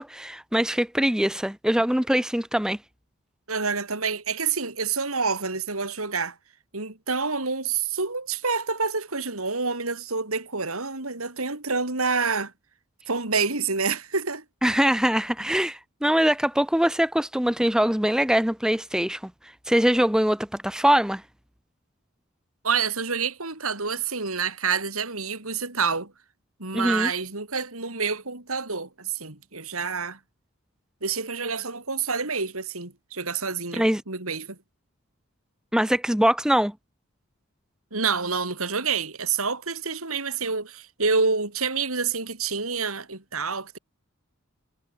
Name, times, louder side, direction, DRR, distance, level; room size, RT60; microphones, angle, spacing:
voice 1, 0.0-2.8 14.6-21.2 26.7-27.1 33.8-34.0 35.7-36.7, equal, 5° right, 0.6 m, -23 dB
voice 2, 3.5-6.3 6.7-12.5 13.1-14.4 22.6-26.1 26.6-30.2 31.0-34.6 37.9-43.8, right 5 dB, 85° right, 4.7 m, -28 dB
head